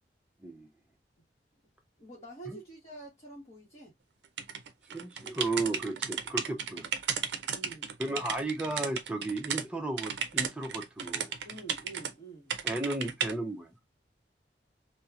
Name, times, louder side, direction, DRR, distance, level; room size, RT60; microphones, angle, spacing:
voice 1, 2.0-3.9 7.5-8.0 11.4-12.6, right 3 dB, 35° left, 1.0 m, -47 dB
sound 1, 4.4-9.6 10.0-12.1 12.5-13.3, right 7 dB, 75° right, 0.5 m, -34 dB
voice 2, 4.9-6.9 8.0-11.3 12.6-13.7, right 2 dB, 5° right, 0.5 m, -34 dB
2.9 x 2.0 x 2.3 m
head